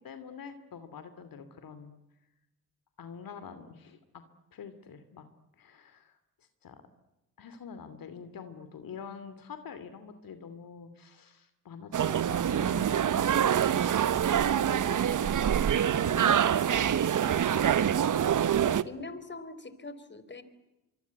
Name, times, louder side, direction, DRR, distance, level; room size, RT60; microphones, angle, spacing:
voice 1, 0.0-1.9 3.0-4.2 4.5-5.3 5.6-6.2 6.6-6.8 7.4-13.8 14.2-15.6 15.9-17.8, left 6 dB, 60° left, 10 dB, 2.7 m, -46 dB
sound 1, 11.9-18.8, right 9 dB, 50° right, 1.3 m, -25 dB
voice 2, 18.8-20.4, left 3 dB, 30° left, 13 dB, 4.2 m, -42 dB
25.0 x 24.5 x 9.5 m, 0.99 s
supercardioid pair, 55°, 38 cm